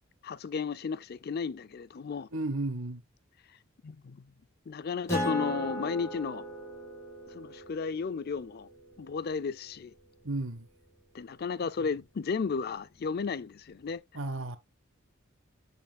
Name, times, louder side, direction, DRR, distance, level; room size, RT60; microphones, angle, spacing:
voice 1, 0.2-2.3 3.8-4.2 4.7-6.4 7.3-8.7 9.0-9.9 11.1-14.0, left 5 dB, 50° left, 0.4 m, -34 dB
voice 2, 2.3-3.0 10.2-10.7 14.1-14.6, right 2 dB, 70° right, 1.1 m, -33 dB
Acoustic guitar, 5.1-10.0, equal, 15° left, 4.9 m, -38 dB
8.0 x 7.1 x 2.3 m
head